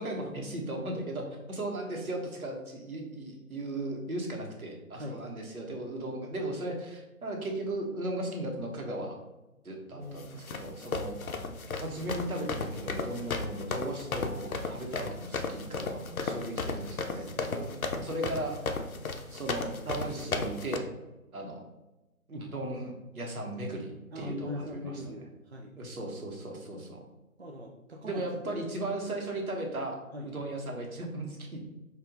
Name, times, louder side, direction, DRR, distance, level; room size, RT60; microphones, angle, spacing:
voice 1, 0.0-9.1 9.6-11.2 11.7-17.7 18.0-18.6 19.3-20.9 21.3-21.6 22.3-24.9 25.8-27.0 28.0-30.0 30.2-31.6, right 1 dB, 80° right, 1 dB, 1.4 m, -36 dB
voice 2, 9.9-10.4 17.1-17.7 24.1-25.7 27.4-28.7 29.0-29.1 30.1-30.3, left 1 dB, 50° right, -1 dB, 0.5 m, -41 dB
sound 1, 10.2-20.8, left 3 dB, 75° left, 0.7 m, -34 dB
4.4 x 2.7 x 3.8 m, 1.0 s
figure-of-eight pair, 165°, 43 cm